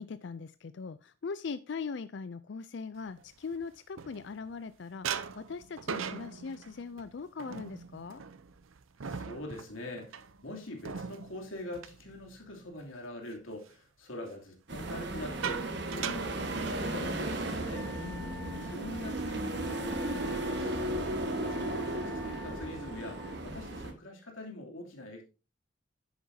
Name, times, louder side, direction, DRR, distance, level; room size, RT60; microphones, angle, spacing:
voice 1, 0.0-8.2 18.0-18.7, left 5 dB, 60° left, 0.4 m, -41 dB
sound 1, 3.2-4.6 5.0-12.9 13.2-13.6 14.7-17.3 17.6-17.8 18.1-18.4 18.9-19.6, right 7 dB, 85° right, 0.7 m, -41 dB
voice 2, 9.0-17.9 18.6-21.0 21.2-25.2, left 1 dB, 80° left, 3.0 m, -44 dB
sound 2, 14.7-23.9, right 1 dB, 55° right, 1.5 m, -35 dB
Wind instrument woodwind instrument, 17.7-23.4, left 5 dB, 5° left, 0.6 m, -50 dB
10.5 x 8.5 x 2.8 m
head